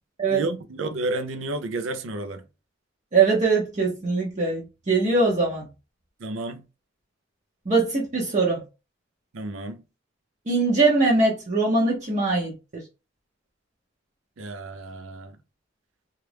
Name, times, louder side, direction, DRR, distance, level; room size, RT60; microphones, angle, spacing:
voice 1, 0.3-2.4 6.2-6.6 9.3-9.8 14.4-15.4, right 2 dB, 90° right, 0.5 m, -31 dB
voice 2, 3.1-5.7 7.7-8.6 10.5-12.5, right 3 dB, 40° right, 0.7 m, -22 dB
3.1 x 2.4 x 3.3 m
head